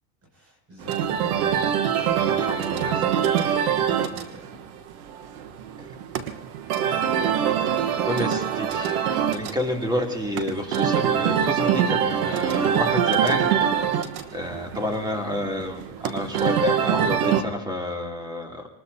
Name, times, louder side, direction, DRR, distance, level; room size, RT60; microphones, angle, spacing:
voice 1, 0.3-1.7 3.9-4.7, right 1 dB, 35° right, 0 dB, 6.8 m, -43 dB
sound 1, 0.8-17.4, right 8 dB, 85° right, 1.4 m, -24 dB
voice 2, 2.1-3.6 5.8-5.9 8.1-13.5 14.3-18.7, left 1 dB, 10° right, 1 dB, 3.0 m, -29 dB
26.0 x 20.0 x 2.8 m, 0.87 s
supercardioid pair, 105°, 42 cm